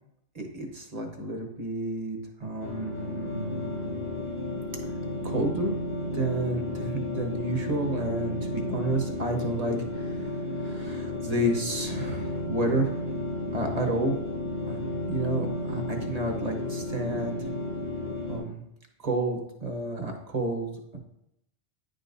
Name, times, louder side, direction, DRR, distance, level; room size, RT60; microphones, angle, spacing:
voice 1, 0.3-4.0 5.2-5.8 6.1-13.1 13.5-14.2 14.7-14.8 15.1-17.5 18.3-18.6 19.0-21.0, right 1 dB, 40° right, 3 dB, 1.1 m, -31 dB
sound 1, 2.6-18.4, left 1 dB, 85° left, 2.7 m, -33 dB
9.8 x 5.2 x 2.6 m, 0.83 s
omnidirectional pair, 1.1 m